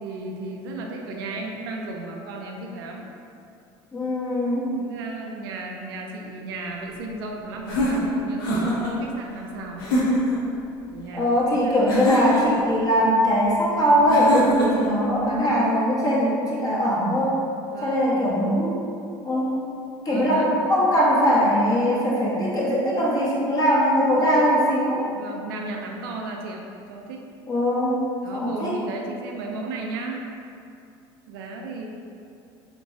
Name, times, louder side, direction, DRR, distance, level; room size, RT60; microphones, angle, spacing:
voice 1, 0.0-3.1 4.8-9.9 10.9-11.7 17.7-18.1 20.1-20.5 25.1-27.3 28.2-30.3 31.3-31.9, right 2 dB, 90° right, 1 dB, 0.4 m, -35 dB
voice 2, 3.9-4.7 11.1-17.4 17.8-18.7 19.2-19.6 20.0-25.1 27.5-28.0 28.3-28.7, equal, 30° left, -6 dB, 1.1 m, -21 dB
sound 1, 7.7-8.9 9.8-10.4 11.9-12.6 14.1-14.9, equal, 90° left, 0.8 m, -24 dB
3.5 x 3.0 x 2.6 m, 2.5 s
supercardioid pair, 85°, 12 cm